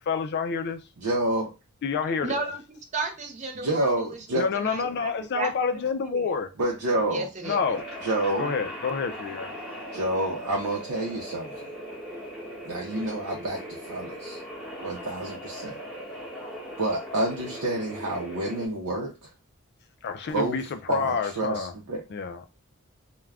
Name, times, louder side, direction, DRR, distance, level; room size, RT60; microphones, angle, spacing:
voice 1, 0.1-0.8 1.8-2.4 4.4-6.5 7.4-7.8 8.4-9.5 20.0-21.7 22.1-22.5, left 5 dB, 50° left, 0.4 m, -28 dB
voice 2, 1.0-1.5 3.5-4.5 6.6-7.3 8.0-8.5 9.9-11.5 12.6-13.6 13.9-14.4 14.8-15.8 16.8-19.1 20.3-20.6 20.9-22.0, right 1 dB, 85° right, 0.6 m, -28 dB
voice 3, 2.2-6.3 7.1-7.8, right 3 dB, 35° right, 0.6 m, -34 dB
sound 1, 7.4-18.7, equal, ahead, 0.8 m, -39 dB
2.4 x 2.1 x 3.3 m
head